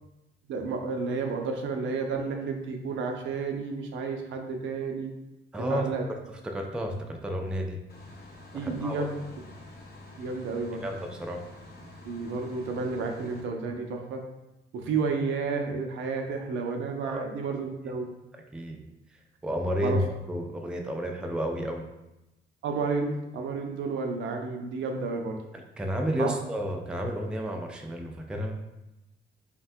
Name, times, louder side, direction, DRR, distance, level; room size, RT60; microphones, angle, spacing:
voice 1, 0.5-5.1 5.7-6.0 8.5-9.1 10.2-10.8 12.0-14.2 14.7-18.1 19.8-20.0 22.6-25.4 26.2-26.3, right 4 dB, 75° right, 3 dB, 0.5 m, -31 dB
voice 2, 5.5-7.8 8.6-9.1 10.8-11.4 17.0-17.3 18.3-18.8 19.4-21.9 25.8-28.6, equal, 5° right, 2 dB, 0.3 m, -31 dB
sound 1, 7.9-13.4, left 2 dB, 55° left, 0.7 m, -47 dB
3.2 x 2.2 x 2.6 m, 0.95 s
cardioid pair, 90°, 20 cm